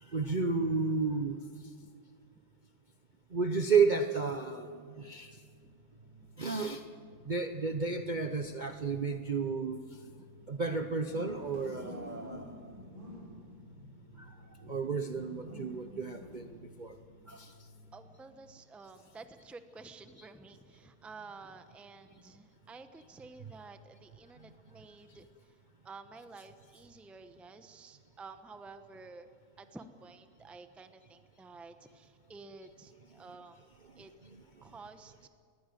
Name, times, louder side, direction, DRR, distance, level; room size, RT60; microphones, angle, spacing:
voice 1, 0.0-1.4 3.3-5.3 6.4-6.8 7.3-9.8 10.5-12.5 14.7-17.0 17.3-17.5, right 4 dB, 40° right, 6 dB, 0.7 m, -32 dB
sound 1, 5.2-18.5, left 1 dB, 85° right, 6.1 m, -51 dB
voice 2, 17.9-25.3 25.8-29.3 29.6-33.7 34.0-34.1 34.6-35.3, right 3 dB, ahead, 9 dB, 0.7 m, -51 dB
22.0 x 15.0 x 9.3 m, 2.1 s
omnidirectional pair, 1.7 m